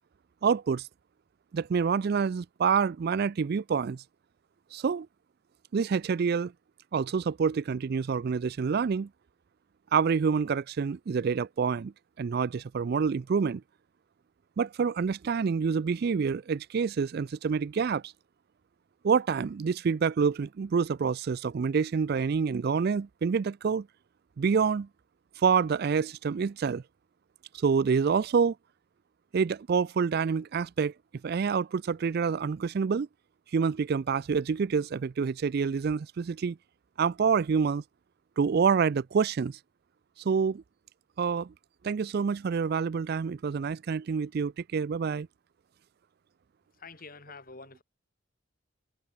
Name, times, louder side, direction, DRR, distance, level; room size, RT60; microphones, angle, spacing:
voice 1, 0.4-0.9 1.5-4.0 4.7-5.1 5.7-6.5 6.9-9.1 9.9-11.9 12.2-13.6 14.6-18.1 19.0-23.9 24.4-24.9 25.4-26.8 27.5-28.6 29.3-30.9 31.2-33.1 33.5-36.6 37.0-37.8 38.4-39.6 40.2-40.6 41.2-41.5 41.8-45.3, right 6 dB, 50° right, 0.3 m, -27 dB
voice 2, 46.8-47.8, left 4 dB, 40° left, 2.5 m, -47 dB
head